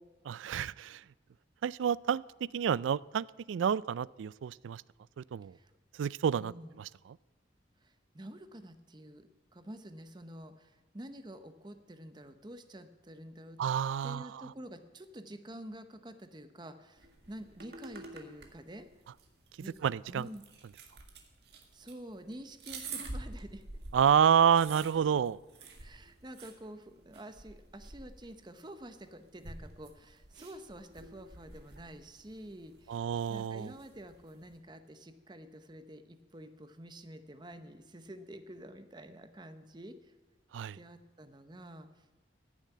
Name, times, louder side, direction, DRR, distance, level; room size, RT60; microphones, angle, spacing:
voice 1, 0.3-1.0 1.6-4.8 5.3-5.6 6.0-6.5 13.6-14.3 19.8-20.3 23.9-25.4 32.9-33.7 40.5-40.8, right 8 dB, 90° right, 22 dB, 0.3 m, -29 dB
voice 2, 6.4-6.7 7.8-13.6 14.0-18.8 19.6-19.7 20.1-20.4 21.5-23.6 25.8-40.1 40.7-42.1, right 1 dB, 25° right, 9 dB, 0.8 m, -48 dB
sound 1, 17.0-34.6, right 3 dB, 60° right, 1.9 m, -49 dB
14.5 x 7.4 x 8.5 m, 1.2 s
head